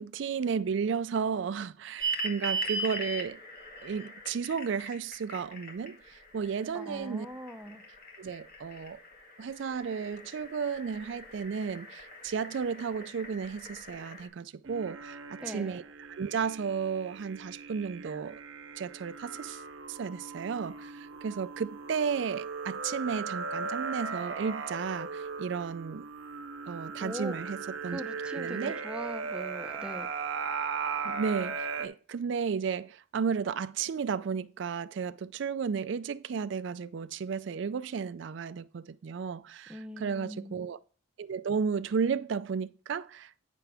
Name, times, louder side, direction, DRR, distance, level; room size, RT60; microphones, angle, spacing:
voice 1, 0.0-3.4 3.8-7.3 8.2-9.0 9.4-15.8 16.2-18.4 18.8-19.6 19.9-26.0 26.7-28.0 28.3-28.8 31.0-40.8 41.2-43.3, right 6 dB, 65° right, 0.4 m, -33 dB
sound 1, 2.0-14.3, right 2 dB, 50° left, 1.8 m, -40 dB
voice 2, 6.7-7.8 15.4-15.8 27.0-27.3 27.9-30.1 39.7-40.6, equal, 5° right, 0.6 m, -41 dB
sound 2, 14.7-31.9, right 5 dB, 90° right, 1.0 m, -38 dB
9.1 x 5.9 x 3.4 m
head